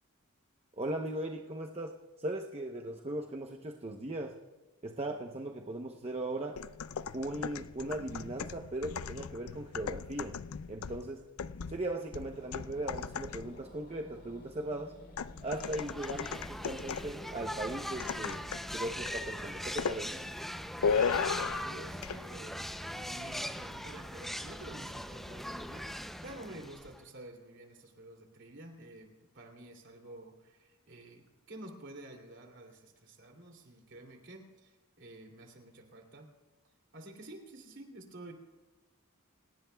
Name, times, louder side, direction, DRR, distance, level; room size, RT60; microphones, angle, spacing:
voice 1, 0.8-4.4 4.8-6.6 7.1-10.4 10.7-11.2 11.7-14.9 15.4-18.5 18.7-20.1, right 1 dB, 30° right, 2 dB, 0.8 m, -38 dB
sound 1, 6.6-13.6 15.2-17.2 18.0-18.7 19.1-19.3 19.8-20.0 20.8-21.7 22.0-22.2, left 6 dB, 75° left, 0.4 m, -36 dB
sound 2, 12.3-25.4, equal, 50° left, 3.6 m, -55 dB
sound 3, 15.5-27.1, equal, ahead, 0.5 m, -41 dB
voice 2, 20.8-36.3 36.9-38.3, right 1 dB, 55° right, 3 dB, 2.9 m, -50 dB
29.5 x 18.0 x 2.3 m, 1.2 s
head